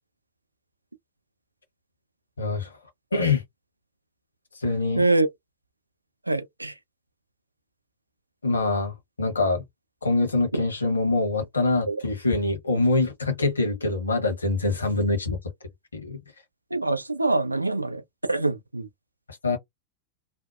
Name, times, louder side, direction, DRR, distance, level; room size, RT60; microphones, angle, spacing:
voice 1, 2.4-2.8 3.1-3.4 4.5-5.0 8.4-9.6 10.0-15.4 15.9-16.2 19.3-19.6, left 3 dB, 75° left, 0.9 m, -24 dB
voice 2, 5.0-5.3 6.3-6.7 10.5-10.6 11.9-12.0 16.7-18.0 18.3-18.9, right 2 dB, 85° right, 0.4 m, -24 dB
2.6 x 2.1 x 2.3 m
figure-of-eight pair, 90°, 0 cm